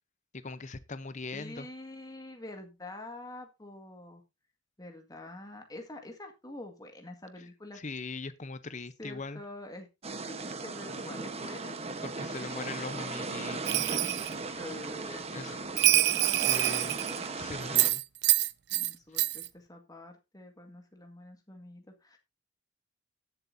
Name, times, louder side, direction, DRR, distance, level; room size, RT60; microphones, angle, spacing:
voice 1, 0.3-1.7 7.7-9.4 12.0-13.8 15.3-15.6 16.2-17.0 17.4-18.0, left 3 dB, 35° left, 0.7 m, -40 dB
voice 2, 1.3-4.2 4.8-7.8 9.0-9.9 10.2-12.0 12.4-13.2 14.3-17.3 18.7-22.2, left 1 dB, 20° left, 1.8 m, -46 dB
sound 1, 10.0-17.9, right 3 dB, 30° right, 1.1 m, -37 dB
Bell, 13.7-14.3 15.8-17.3 17.8-18.9 19.2-19.5, right 16 dB, 55° right, 0.5 m, -26 dB
18.0 x 7.9 x 2.7 m
head